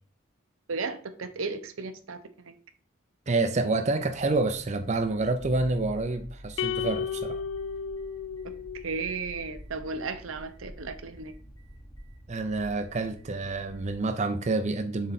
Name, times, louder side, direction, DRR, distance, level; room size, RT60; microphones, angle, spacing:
voice 1, 0.7-2.5 8.8-11.3, right 4 dB, 80° right, 9 dB, 0.8 m, -34 dB
voice 2, 3.3-7.4 12.3-15.1, right 3 dB, 35° right, 7 dB, 0.5 m, -28 dB
sound 1, 4.0-14.0, equal, 20° left, 1.2 m, -47 dB
sound 2, 6.6-9.0, left 7 dB, 70° left, 0.4 m, -33 dB
7.3 x 3.9 x 4.0 m, 0.41 s
head